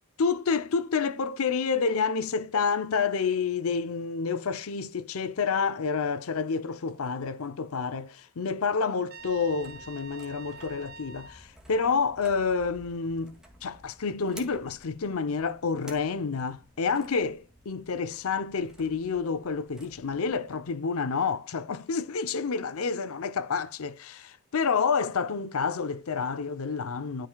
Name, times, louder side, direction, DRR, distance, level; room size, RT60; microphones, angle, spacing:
voice 1, 0.2-27.3, left 5 dB, 75° left, 0.6 m, -29 dB
Trumpet, 9.1-11.4, right 4 dB, 45° right, 1.1 m, -46 dB
sound 1, 9.2-20.7, right 1 dB, 5° right, 2.1 m, -54 dB
12.5 x 5.8 x 2.3 m
head